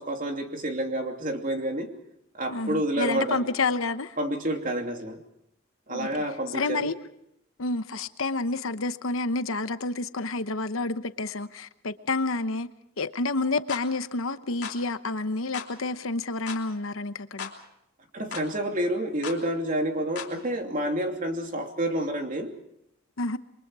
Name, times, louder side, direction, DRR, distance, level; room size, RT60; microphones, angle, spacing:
voice 1, 0.0-1.9 2.3-3.4 4.2-5.2 5.9-6.9 18.1-22.5, right 1 dB, 40° right, 2.8 m, -29 dB
voice 2, 2.5-4.2 5.9-6.1 6.5-6.9 7.6-12.7 13.0-17.5 23.2-23.4, left 3 dB, 70° left, 1.0 m, -29 dB
sound 1, 13.7-13.9 14.6-14.8 15.5-15.7 16.5-16.6 17.4-17.6 18.3-18.5 19.2-19.4 20.2-20.3, left 6 dB, 50° left, 3.3 m, -36 dB
28.5 x 23.0 x 4.8 m
head